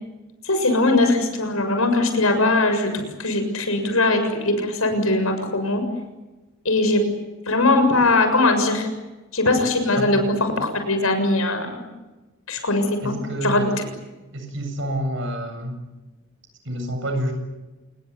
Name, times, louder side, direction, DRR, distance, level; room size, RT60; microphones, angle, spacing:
voice 1, 0.4-5.8 6.7-7.1 7.5-8.9 9.3-10.2 10.6-11.7 12.5-13.2 13.4-13.8, left 2 dB, 85° left, 7 dB, 7.0 m, -20 dB
voice 2, 13.0-13.8 14.3-15.8 16.7-17.3, right 1 dB, 60° right, 6 dB, 7.6 m, -28 dB
28.5 x 21.0 x 9.8 m, 1.1 s
head